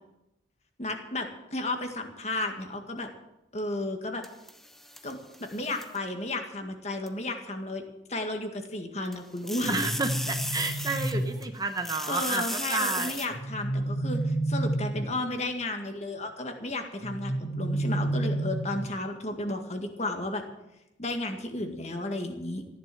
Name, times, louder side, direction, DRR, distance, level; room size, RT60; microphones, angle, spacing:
voice 1, 0.8-3.1 3.5-4.2 5.0-7.8 8.1-9.8 12.1-20.4 21.0-22.8, left 2 dB, 40° left, 5 dB, 1.9 m, -33 dB
sound 1, 4.2-6.0 7.1-7.2 9.1-11.5 11.8-13.3, equal, ahead, 0.9 m, -36 dB
sound 2, 9.6-11.6 13.3-15.3 17.0-19.0, right 1 dB, 85° left, 6.4 m, -30 dB
voice 2, 9.7-13.1, right 3 dB, 20° right, 6 dB, 1.0 m, -31 dB
15.0 x 10.5 x 7.8 m, 0.92 s
head